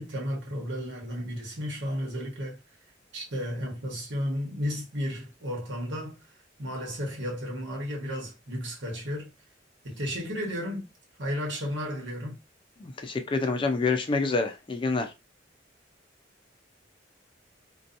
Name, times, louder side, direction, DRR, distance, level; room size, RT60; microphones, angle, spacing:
voice 1, 0.0-2.6 3.1-6.2 6.6-9.3 9.8-10.9 11.2-12.4, equal, 80° right, 1.1 m, -33 dB
voice 2, 12.8-15.1, left 3 dB, 30° left, 0.4 m, -27 dB
2.6 x 2.2 x 2.5 m
head